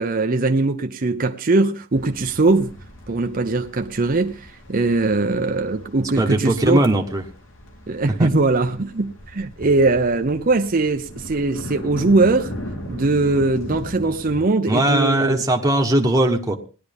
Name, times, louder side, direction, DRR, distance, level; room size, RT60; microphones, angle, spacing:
voice 1, 0.0-2.8 3.1-6.9 7.9-12.5 12.9-15.4, right 3 dB, 40° right, 0.7 m, -20 dB
sound 1, 1.9-14.5, equal, 65° left, 3.3 m, -38 dB
voice 2, 6.2-7.2 8.2-8.3 14.7-16.6, right 1 dB, 15° right, 1.2 m, -19 dB
18.5 x 11.0 x 3.5 m
head